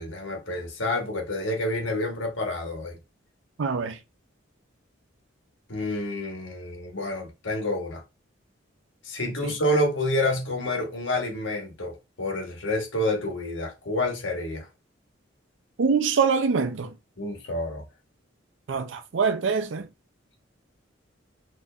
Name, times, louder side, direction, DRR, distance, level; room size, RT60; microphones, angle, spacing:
voice 1, 0.0-3.0 5.7-8.0 9.0-14.7 17.2-17.8, left 1 dB, 80° left, 1.3 m, -28 dB
voice 2, 3.6-4.0 9.4-9.5 15.8-17.0 18.7-19.9, right 5 dB, 75° right, 0.5 m, -24 dB
4.4 x 2.9 x 2.4 m
head